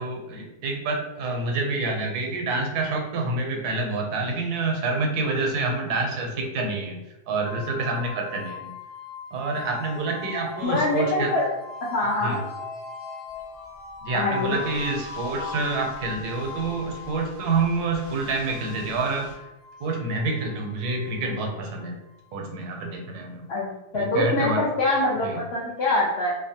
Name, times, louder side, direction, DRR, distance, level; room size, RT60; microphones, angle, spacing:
voice 1, 0.0-7.0 7.3-8.7 9.3-11.3 12.2-12.4 14.0-19.5 19.8-22.0 22.3-23.5 24.0-24.6 25.2-25.4, right 3 dB, 85° right, 1 dB, 1.1 m, -27 dB
sound 1, 7.4-22.3, left 5 dB, 60° left, 1.0 m, -40 dB
voice 2, 10.6-11.5 11.9-12.4 14.1-14.6 23.5-26.3, left 2 dB, 75° left, -6 dB, 0.6 m, -24 dB
sound 2, 13.3-19.3, equal, 40° right, 0.5 m, -48 dB
2.7 x 2.1 x 2.7 m, 0.95 s
omnidirectional pair, 1.6 m